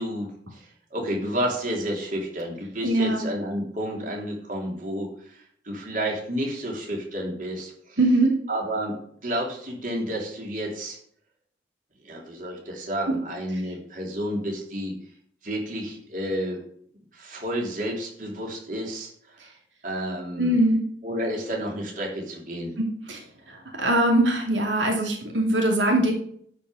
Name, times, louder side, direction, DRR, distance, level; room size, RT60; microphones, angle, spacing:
voice 1, 0.0-8.0 8.5-8.9 9.2-11.0 12.0-14.9 15.4-16.6 17.1-19.5 19.8-20.6 21.0-22.7, equal, 45° right, -1 dB, 3.3 m, -31 dB
voice 2, 2.8-3.2 8.0-8.4 13.1-13.2 20.4-20.9 22.8-23.2 23.5-26.1, right 1 dB, 90° right, 1 dB, 2.6 m, -22 dB
12.5 x 5.5 x 7.6 m, 0.62 s
head